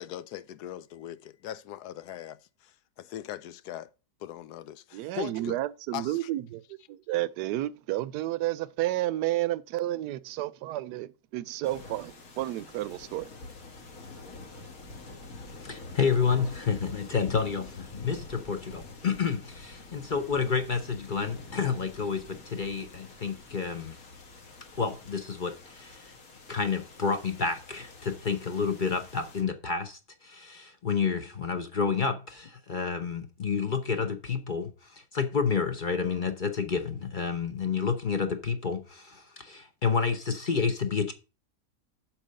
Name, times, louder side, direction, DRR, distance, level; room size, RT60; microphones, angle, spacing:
voice 1, 0.0-3.9 4.2-5.6 5.9-6.3, left 11 dB, 75° left, 1.1 m, -40 dB
voice 2, 4.9-6.6 6.9-13.3, right 15 dB, 80° right, 1.2 m, -31 dB
sound 1, 11.6-29.4, left 3 dB, 60° left, 1.6 m, -47 dB
voice 3, 15.4-24.0 24.8-26.1 26.5-41.1, left 5 dB, 40° left, 0.8 m, -30 dB
7.5 x 5.0 x 6.4 m
omnidirectional pair, 1.8 m